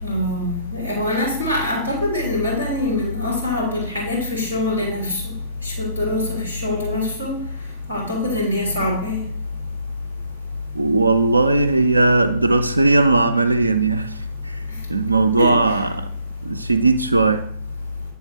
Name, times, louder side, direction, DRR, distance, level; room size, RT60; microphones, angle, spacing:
voice 1, 0.0-5.2 5.6-7.4 7.9-9.2 15.4-15.5, left 2 dB, 90° left, 2.4 m, -23 dB
voice 2, 10.7-14.6 14.9-16.1 16.4-17.5, right 3 dB, 80° right, 0.3 m, -18 dB
9.2 x 3.4 x 4.3 m
figure-of-eight pair, 90°, 0 cm